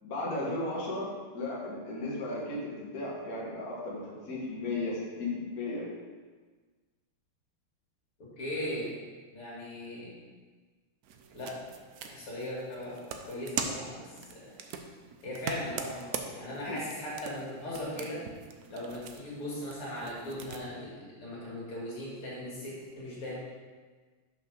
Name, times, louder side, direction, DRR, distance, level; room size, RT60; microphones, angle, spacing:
voice 1, 0.0-5.8, left 2 dB, 45° left, -6 dB, 2.0 m, -35 dB
voice 2, 8.4-8.9 9.3-10.1 11.3-11.6 12.1-14.6 15.2-18.2 18.7-23.4, left 1 dB, 80° left, -6 dB, 3.2 m, -38 dB
sound 1, 11.0-20.6, right 6 dB, 80° right, 0.8 m, -42 dB
5.9 x 5.5 x 6.0 m, 1.4 s
omnidirectional pair, 2.4 m